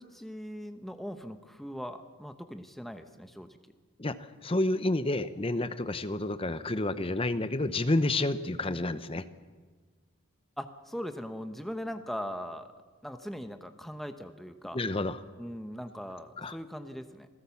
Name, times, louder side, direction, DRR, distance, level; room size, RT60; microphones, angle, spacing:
voice 1, 0.0-3.6 10.6-12.7 13.0-14.8 15.4-17.3, equal, ahead, 7 dB, 1.0 m, -40 dB
voice 2, 4.0-9.2 14.7-15.2 16.4-16.5, left 2 dB, 25° left, 12 dB, 0.8 m, -29 dB
27.5 x 16.5 x 7.1 m, 1.4 s
head